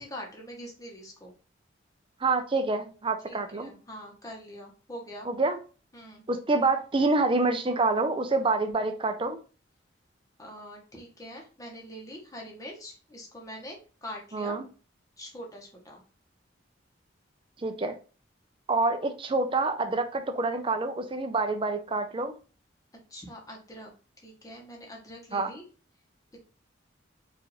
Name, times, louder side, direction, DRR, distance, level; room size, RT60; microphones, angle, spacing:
voice 1, 0.0-1.3 3.2-5.3 5.9-6.2 10.4-14.6 15.2-16.0 23.1-23.9 24.2-25.6 26.3-26.4, equal, 20° left, 0.9 m, -43 dB
voice 2, 2.2-3.7 5.3-5.6 6.3-9.4 14.3-14.7 17.6-18.0 18.7-22.4 25.3-25.5, right 3 dB, 25° right, 0.5 m, -27 dB
4.7 x 2.5 x 3.0 m
head